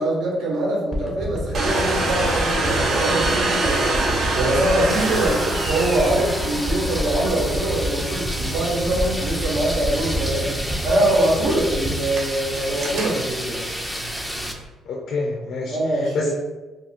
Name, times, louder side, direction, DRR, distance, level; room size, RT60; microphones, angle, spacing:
voice 1, 0.0-13.6 15.7-16.3, right 1 dB, 80° right, -3 dB, 1.0 m, -23 dB
sound 1, 0.9-13.2 13.7-13.8, right 1 dB, 20° right, 0.8 m, -28 dB
Domestic sounds home sounds, 1.5-14.6, right 2 dB, 60° right, 0.6 m, -27 dB
sound 2, 4.9-14.5, equal, ahead, 0.4 m, -31 dB
voice 2, 14.9-16.3, left 3 dB, 65° left, 1 dB, 0.4 m, -28 dB
2.6 x 2.5 x 4.2 m, 1.2 s
cardioid pair, 125°, 0 cm